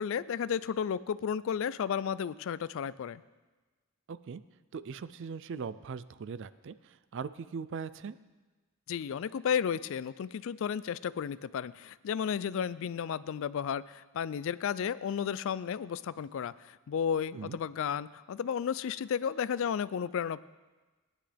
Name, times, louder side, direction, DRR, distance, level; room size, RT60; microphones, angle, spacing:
voice 1, 0.0-3.2 8.9-20.4, left 7 dB, 60° left, 18 dB, 0.3 m, -33 dB
voice 2, 4.1-4.4 4.7-8.2 17.3-17.6, right 5 dB, 55° right, 15 dB, 0.4 m, -40 dB
18.0 x 10.0 x 3.4 m, 1.2 s
head